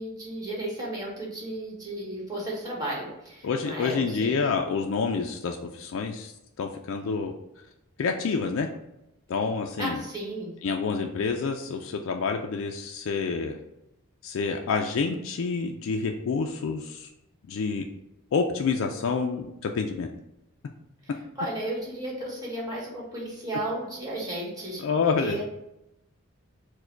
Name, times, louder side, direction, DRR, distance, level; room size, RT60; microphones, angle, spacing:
voice 1, 0.0-4.3 9.8-10.5 21.0-25.4, right 1 dB, 15° right, -3 dB, 1.2 m, -34 dB
voice 2, 3.4-6.3 6.6-7.3 8.0-8.7 9.3-10.0 10.6-13.6 14.2-17.1 17.5-17.8 18.3-20.1 24.8-25.4, left 5 dB, 60° left, 3 dB, 0.3 m, -28 dB
4.6 x 2.1 x 4.5 m, 0.87 s
head